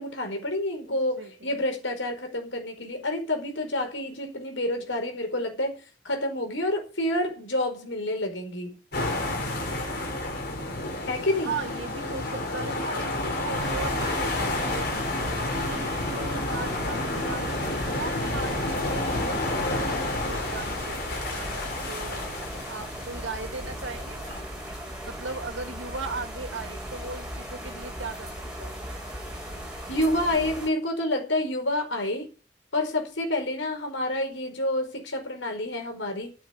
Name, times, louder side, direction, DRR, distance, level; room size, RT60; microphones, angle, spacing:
voice 1, 0.0-5.8 6.0-8.8 11.1-11.6 29.9-32.3 32.7-36.3, left 1 dB, 70° left, 4.8 m, -28 dB
voice 2, 0.8-1.6 11.4-14.3 14.6-14.9 15.5-22.3 22.7-24.5 25.1-28.3 28.6-28.7, right 3 dB, 75° right, 2.6 m, -38 dB
sound 1, 8.9-24.4, left 2 dB, 55° left, 5.6 m, -30 dB
sound 2, 13.5-30.7, equal, 5° right, 6.9 m, -37 dB
10.5 x 8.2 x 9.7 m
head